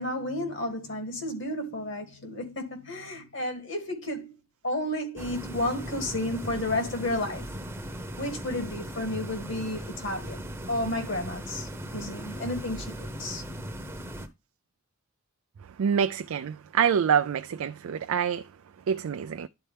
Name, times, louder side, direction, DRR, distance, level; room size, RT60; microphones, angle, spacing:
voice 1, 0.0-4.3 4.6-7.6 8.2-13.7, left 1 dB, 60° left, 2.2 m, -32 dB
sound 1, 5.2-14.3, equal, 10° right, 0.8 m, -38 dB
voice 2, 15.8-18.5 18.9-19.5, right 7 dB, 80° right, 0.4 m, -26 dB
11.5 x 4.2 x 3.3 m
head